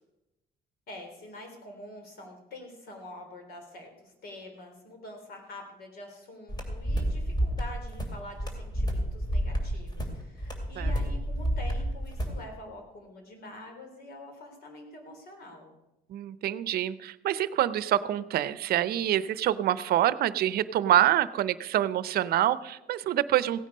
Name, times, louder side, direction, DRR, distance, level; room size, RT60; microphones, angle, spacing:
voice 1, 0.9-15.7, left 1 dB, 65° left, 4 dB, 3.6 m, -46 dB
sound 1, 6.5-12.4, equal, 25° left, 2.7 m, -30 dB
voice 2, 16.1-23.7, right 12 dB, 65° right, 15 dB, 0.7 m, -26 dB
16.5 x 9.2 x 5.4 m, 0.97 s
cardioid pair, 110°, 17 cm